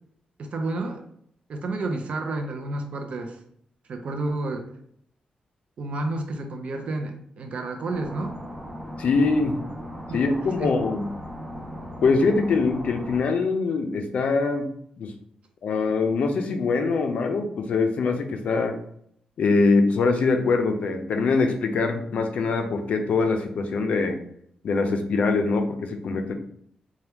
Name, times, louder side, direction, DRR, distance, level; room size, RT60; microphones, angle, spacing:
voice 1, 0.4-1.0 1.5-3.4 3.9-4.7 5.8-8.4 10.1-10.2 10.6-10.8, right 2 dB, 50° right, 4 dB, 0.4 m, -30 dB
sound 1, 7.9-13.2, equal, 15° right, 0.7 m, -38 dB
voice 2, 9.0-9.6 10.1-11.1 12.0-14.7 15.0-15.1 15.6-18.8 19.4-24.2 24.6-26.3, left 4 dB, 60° left, 5 dB, 0.4 m, -23 dB
2.8 x 2.2 x 3.4 m, 0.66 s
wide cardioid pair, 155°, 3 cm